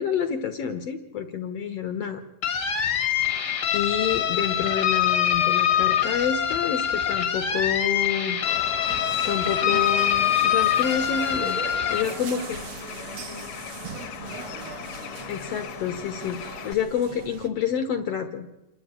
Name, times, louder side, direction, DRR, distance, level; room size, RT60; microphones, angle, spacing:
voice 1, 0.0-2.2 2.6-2.8 3.7-8.4 9.3-11.6 11.9-12.6 15.3-18.5, left 7 dB, 65° left, 7 dB, 1.7 m, -28 dB
sound 1, 2.4-12.0, left 9 dB, 50° left, 1.4 m, -24 dB
Bird, 8.5-16.7, left 10 dB, 85° left, 2.5 m, -39 dB
sound 2, 8.9-17.5, right 7 dB, 55° right, 1.6 m, -40 dB
voice 2, 11.6-13.5 13.8-14.8, right 3 dB, 75° right, 2 dB, 4.2 m, -46 dB
27.5 x 11.0 x 8.9 m, 0.99 s
omnidirectional pair, 3.8 m